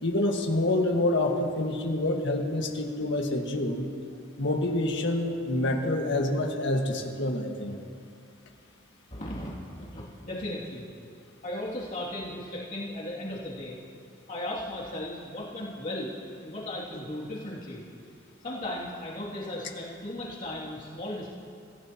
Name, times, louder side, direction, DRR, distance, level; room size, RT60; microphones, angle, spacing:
voice 1, 0.0-3.9 4.4-7.8, left 1 dB, 65° left, 1 dB, 1.7 m, -27 dB
voice 2, 9.1-10.8 11.4-13.8 14.3-17.8 18.4-21.3, left 1 dB, 45° left, -7 dB, 2.6 m, -36 dB
25.5 x 16.0 x 3.0 m, 2.4 s
head